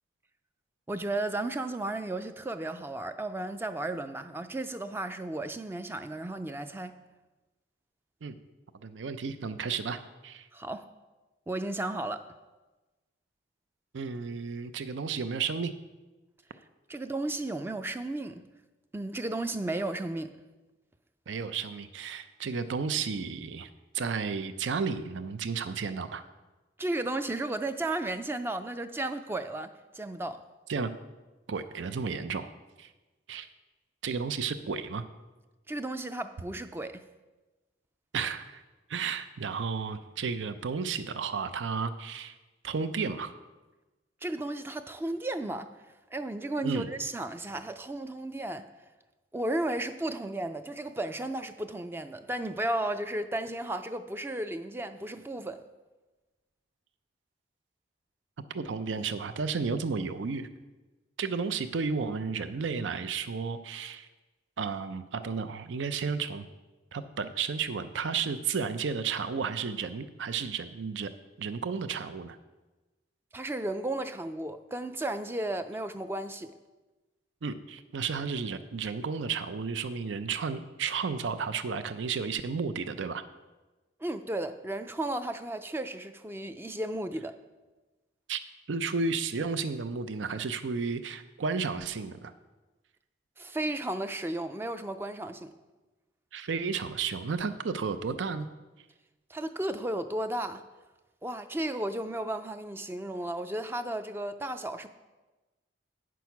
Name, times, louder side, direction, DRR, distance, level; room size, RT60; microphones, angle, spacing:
voice 1, 0.9-7.0 10.5-10.9 11.5-12.3 16.9-18.4 18.9-20.3 26.8-30.4 35.7-37.0 44.2-45.7 46.1-48.7 49.3-55.6 73.3-76.5 84.0-87.3 93.4-95.5 99.3-100.6 101.2-104.9, right 1 dB, 10° right, 0.3 m, -34 dB
voice 2, 8.8-10.5 13.9-15.7 21.3-23.7 23.9-26.2 30.7-30.9 31.5-32.5 32.8-32.9 33.3-33.5 34.0-35.0 38.1-38.6 38.9-42.3 42.6-43.3 46.6-46.9 58.5-60.5 61.2-64.1 64.6-66.5 66.9-71.1 71.4-72.4 77.4-83.2 88.3-88.4 88.7-92.3 96.3-98.5, right 5 dB, 85° right, 0.5 m, -32 dB
9.2 x 6.2 x 5.8 m
head